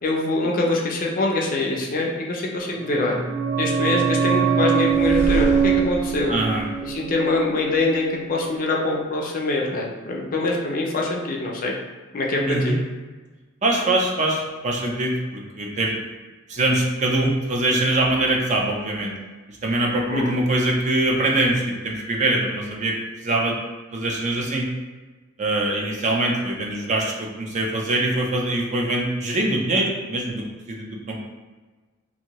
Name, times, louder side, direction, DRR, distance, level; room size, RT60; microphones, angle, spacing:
voice 1, 0.0-3.2 3.6-6.3 6.8-11.7 12.1-12.8 20.1-20.3, left 2 dB, 45° left, -1 dB, 0.5 m, -24 dB
sound 1, 2.7-8.1 8.4-8.5, right 7 dB, 60° right, 1.3 m, -23 dB
sound 2, 4.8-7.8, equal, 10° right, 0.8 m, -30 dB
voice 2, 6.3-6.7 12.4-12.8 13.6-16.0 16.5-19.1 19.6-23.0 23.2-23.6 23.9-24.7 25.4-31.2, right 2 dB, 35° right, -1 dB, 0.4 m, -23 dB
2.8 x 2.6 x 2.9 m, 1.3 s
head